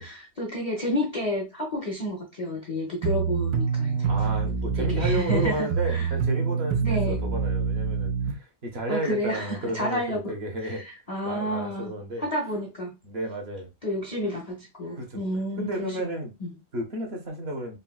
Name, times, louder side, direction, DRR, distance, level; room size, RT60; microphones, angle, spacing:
voice 1, 0.0-4.1 4.8-6.1 6.8-7.2 8.9-10.2 10.6-11.9 12.2-13.0 13.8-16.0 16.4-16.6, equal, 55° left, 0.4 m, -30 dB
sound 1, 3.0-8.3, right 5 dB, 85° right, 1.2 m, -26 dB
voice 2, 4.0-10.8 11.2-12.3 13.0-13.7 15.0-15.2 15.6-16.3 16.7-17.8, right 1 dB, 50° right, 0.9 m, -32 dB
3.9 x 2.1 x 2.3 m
omnidirectional pair, 1.7 m